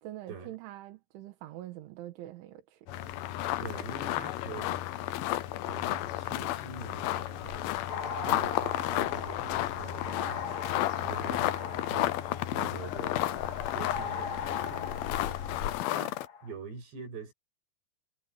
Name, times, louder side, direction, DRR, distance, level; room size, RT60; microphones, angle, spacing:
voice 1, 0.0-2.9, right 14 dB, 85° right, 3.9 m, -44 dB
sound 1, 2.9-16.3, left 15 dB, 90° left, 2.1 m, -33 dB
sound 2, 2.9-15.8, left 10 dB, 65° left, 2.5 m, -41 dB
voice 2, 3.6-4.9 5.6-7.7 8.2-13.3 13.6-15.2 15.9-17.3, right 4 dB, 65° right, 7.7 m, -45 dB
sound 3, 7.9-16.5, left 6 dB, 45° left, 3.0 m, -39 dB
omnidirectional pair, 5.3 m